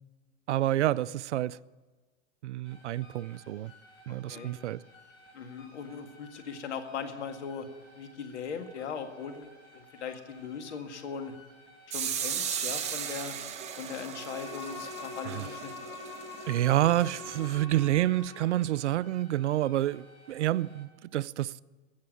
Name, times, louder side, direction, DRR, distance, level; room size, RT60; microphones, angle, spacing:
voice 1, 0.5-1.6 2.4-3.7 4.1-4.8 15.2-15.5 16.5-21.5, right 14 dB, 85° right, 0.5 m, -28 dB
sound 1, 2.6-20.9, equal, 25° left, 6.1 m, -57 dB
voice 2, 4.1-4.5 5.3-7.7 8.0-11.3 11.9-13.4 13.8-15.7, left 6 dB, 80° left, 1.9 m, -39 dB
sound 2, 11.9-17.6, right 8 dB, 20° right, 1.0 m, -37 dB
Bowed string instrument, 13.9-18.7, left 4 dB, 55° left, 5.1 m, -44 dB
15.5 x 7.4 x 9.1 m
hypercardioid pair, 135°, 34 cm